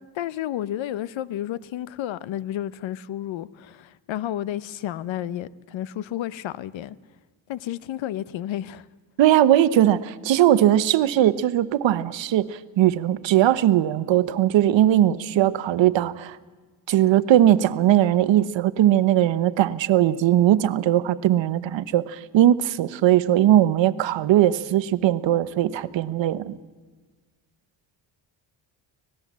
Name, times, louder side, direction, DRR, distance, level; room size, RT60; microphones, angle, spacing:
voice 1, 0.0-7.0 7.5-8.9, left 12 dB, 75° left, 0.9 m, -31 dB
voice 2, 9.2-16.4 16.9-26.6, right 12 dB, 70° right, 1.0 m, -19 dB
25.0 x 18.5 x 7.4 m
cardioid pair, 130°, 46 cm